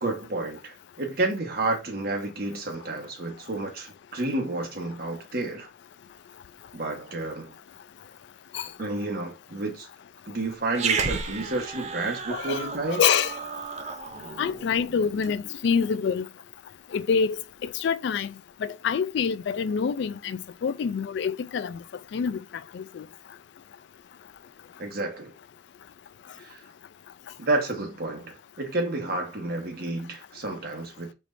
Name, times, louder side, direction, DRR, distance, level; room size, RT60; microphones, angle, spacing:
voice 1, 0.0-5.7 6.7-7.6 8.8-9.9 10.3-13.0 24.8-25.3 26.4-26.6 27.4-31.1, right 2 dB, 50° right, 1.3 m, -30 dB
Growling, 10.7-15.3, right 5 dB, 35° right, 0.5 m, -32 dB
voice 2, 12.3-13.4 14.4-16.3 16.9-17.4 17.6-18.3 18.6-21.8 22.1-22.4 22.7-23.0, left 6 dB, 60° left, 0.3 m, -26 dB
4.4 x 3.2 x 2.6 m
head